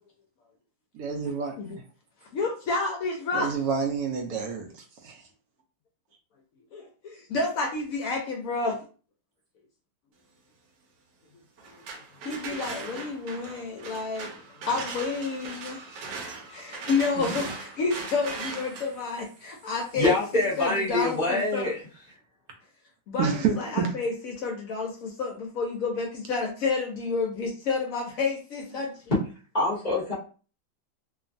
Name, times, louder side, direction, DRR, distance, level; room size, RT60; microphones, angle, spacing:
voice 1, 0.9-1.6 3.3-5.2 14.7-14.8 17.2-17.5 23.2-23.9, right 6 dB, 70° right, 0.9 m, -29 dB
voice 2, 2.3-3.5 6.7-8.8 12.2-14.3 14.6-15.8 16.5-21.7 23.1-28.9, left 4 dB, 65° left, 0.9 m, -30 dB
sound 1, 11.6-21.4, right 4 dB, 90° right, 1.3 m, -40 dB
voice 3, 19.9-21.8 29.5-30.1, left 2 dB, 35° left, 0.7 m, -25 dB
3.0 x 2.2 x 2.5 m
omnidirectional pair, 1.8 m